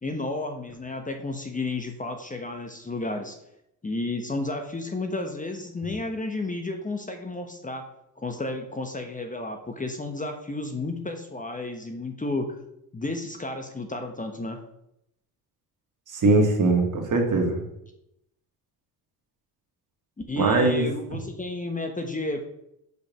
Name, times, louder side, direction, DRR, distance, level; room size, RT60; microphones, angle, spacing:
voice 1, 0.0-3.4 3.8-7.8 8.2-12.5 12.9-14.6 20.3-22.4, left 2 dB, 20° left, 5 dB, 1.1 m, -32 dB
voice 2, 16.1-17.6 20.4-20.9, right 2 dB, 45° right, 2 dB, 2.1 m, -21 dB
5.4 x 5.0 x 6.1 m, 0.79 s
supercardioid pair, 75°, 43 cm